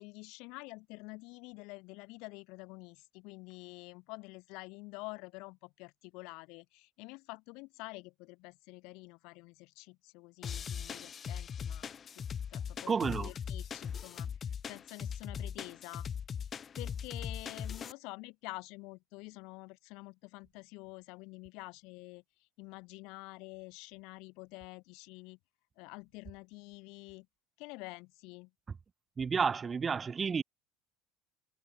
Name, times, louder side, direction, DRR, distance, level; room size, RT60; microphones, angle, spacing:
voice 1, 0.0-16.1 16.8-22.2 22.6-25.4 25.8-27.3 27.6-28.5, left 27 dB, 65° left, 1.8 m, -48 dB
sound 1, 10.4-17.9, left 7 dB, 35° left, 0.3 m, -40 dB
voice 2, 12.9-13.3 29.2-30.4, right 5 dB, 25° right, 0.8 m, -31 dB
hypercardioid pair, 85°, 0 cm